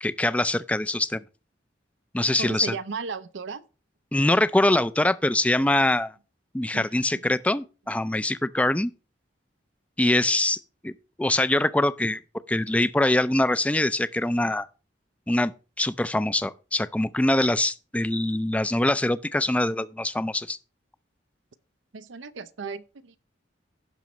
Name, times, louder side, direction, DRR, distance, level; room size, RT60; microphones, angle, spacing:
voice 1, 0.0-1.2 2.1-2.8 4.1-6.1 6.5-8.9 10.0-10.9 11.2-12.2 12.5-14.7 15.3-15.5 15.8-20.6, left 1 dB, 5° left, 0.3 m, -23 dB
voice 2, 2.4-3.6 6.7-6.9 7.1-7.2 21.9-23.2, right 4 dB, 85° right, 0.6 m, -35 dB
16.0 x 6.1 x 3.0 m
head